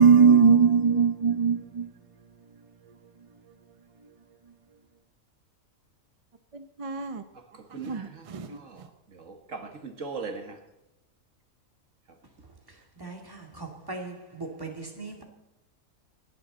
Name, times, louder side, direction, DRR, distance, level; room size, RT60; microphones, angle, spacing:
voice 1, 0.0-1.9 6.8-7.2 7.8-8.5, right 6 dB, 35° right, 0.5 m, -20 dB
voice 2, 7.5-8.9 9.1-10.6, right 4 dB, 65° right, 2.0 m, -40 dB
voice 3, 13.0-15.2, right 3 dB, 15° right, 2.3 m, -39 dB
28.0 x 10.5 x 4.0 m
omnidirectional pair, 1.4 m